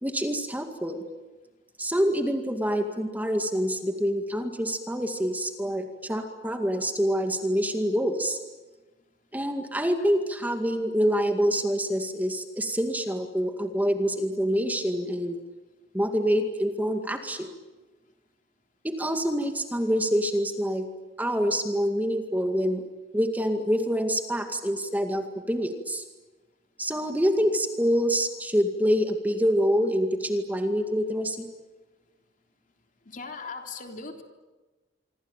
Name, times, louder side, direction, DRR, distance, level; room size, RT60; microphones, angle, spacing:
voice 1, 0.0-1.0 1.8-8.4 9.3-15.4 15.9-17.5 18.8-20.9 21.2-22.8 23.1-26.0 26.8-31.5, equal, 10° right, 5 dB, 2.1 m, -26 dB
voice 2, 33.1-34.2, left 4 dB, 45° left, 4 dB, 3.5 m, -38 dB
26.5 x 25.0 x 9.1 m, 1.2 s
head